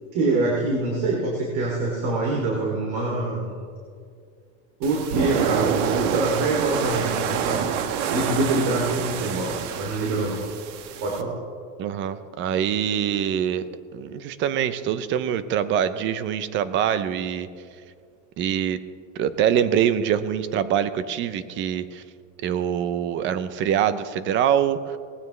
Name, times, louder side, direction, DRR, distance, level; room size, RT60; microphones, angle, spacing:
voice 1, 0.1-3.6 4.8-7.7 8.1-10.4 11.0-11.3, right 2 dB, 55° right, -2 dB, 2.9 m, -25 dB
sound 1, 4.8-11.2, right 8 dB, 75° right, 1.2 m, -27 dB
voice 2, 11.8-13.6 13.9-17.5 18.4-18.8 19.2-22.0 22.4-25.0, right 9 dB, 30° right, 13 dB, 0.6 m, -24 dB
19.5 x 16.5 x 3.3 m, 2.2 s
supercardioid pair, 160°, 38 cm